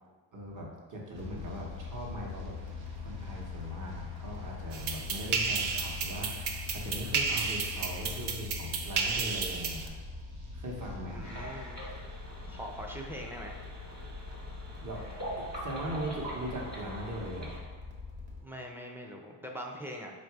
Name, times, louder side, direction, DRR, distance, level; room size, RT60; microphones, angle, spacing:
voice 1, 0.3-2.6 2.9-9.9 10.5-11.2 14.8-15.0 15.4-17.7, equal, 40° right, -2 dB, 1.0 m, -40 dB
sound 1, 1.1-18.4, left 4 dB, 85° right, 1.0 m, -43 dB
sound 2, 4.7-9.9, right 5 dB, 60° right, 0.6 m, -32 dB
voice 2, 11.1-11.8 12.4-13.7 18.4-20.1, equal, 5° right, 0 dB, 0.4 m, -42 dB
sound 3, 11.2-17.6, right 1 dB, 20° right, 1.3 m, -43 dB
3.9 x 2.6 x 4.5 m, 1.5 s
cardioid pair, 110°, 46 cm